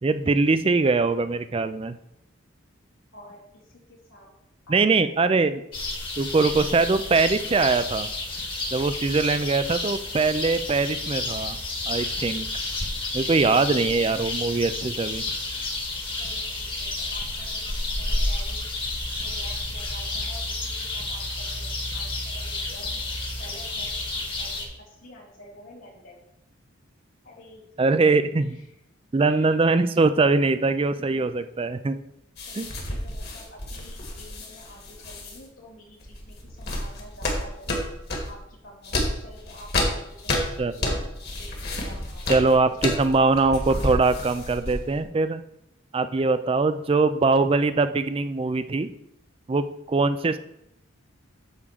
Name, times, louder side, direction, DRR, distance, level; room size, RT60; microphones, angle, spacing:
voice 1, 0.0-2.0 4.7-5.6 6.2-8.1 8.7-11.6 11.9-12.5 13.1-15.2 27.8-28.6 29.1-32.0 32.6-32.7 40.6-40.7 42.3-45.4 45.9-48.9 49.5-50.4, right 3 dB, 25° right, 11 dB, 0.4 m, -22 dB
voice 2, 3.1-4.3 4.7-5.1 16.1-18.7 19.2-21.7 21.9-23.0 23.4-26.2 27.2-28.0 28.3-28.8 29.2-29.5 31.0-31.3 32.4-37.7 38.3-41.0 41.4-42.7 43.0-43.2, left 1 dB, 90° left, -5 dB, 3.5 m, -49 dB
sound 1, 5.7-24.7, left 2 dB, 25° left, 1.2 m, -30 dB
sound 2, 32.4-35.4 36.0-38.4 38.8-45.0, left 1 dB, 50° left, 1.8 m, -30 dB
9.6 x 3.7 x 7.1 m, 0.81 s
head